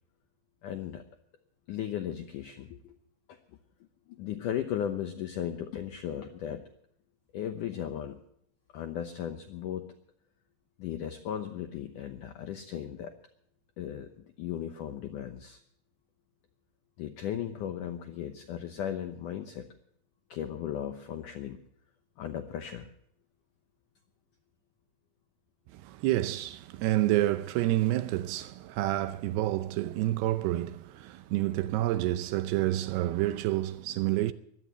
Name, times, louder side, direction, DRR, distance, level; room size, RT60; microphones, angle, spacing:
voice 1, 0.6-1.0 1.7-2.9 3.3-3.4 4.1-6.6 7.3-8.2 8.7-9.9 10.8-13.1 13.8-15.6 17.0-19.7 20.3-21.6 22.2-22.9, left 10 dB, 80° left, 1.9 m, -36 dB
voice 2, 25.8-34.3, right 15 dB, 80° right, 2.6 m, -28 dB
22.0 x 16.5 x 3.0 m
omnidirectional pair, 5.0 m